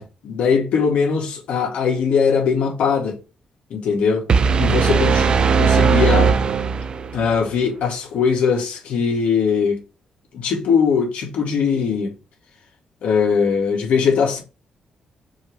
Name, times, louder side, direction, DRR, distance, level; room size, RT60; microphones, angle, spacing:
voice 1, 0.0-3.2 3.7-4.2 4.6-6.3 7.1-9.8 10.3-12.1 13.0-14.4, left 6 dB, 80° left, 2.0 m, -20 dB
sound 1, 4.3-7.3, right 5 dB, 45° right, 0.5 m, -17 dB
6.1 x 3.2 x 4.8 m
cardioid pair, 110°, 2 cm